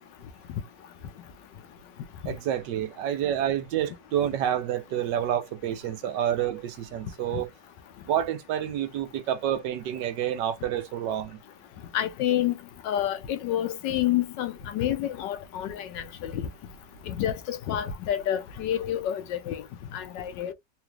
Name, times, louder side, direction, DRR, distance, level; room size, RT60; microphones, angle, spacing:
voice 1, 2.3-7.5 8.1-11.4, right 10 dB, 75° right, 1.3 m, -28 dB
voice 2, 11.9-12.5 12.8-16.5 17.1-19.6 19.9-20.5, left 11 dB, 80° left, 1.3 m, -28 dB
3.9 x 2.4 x 3.0 m
omnidirectional pair, 1.9 m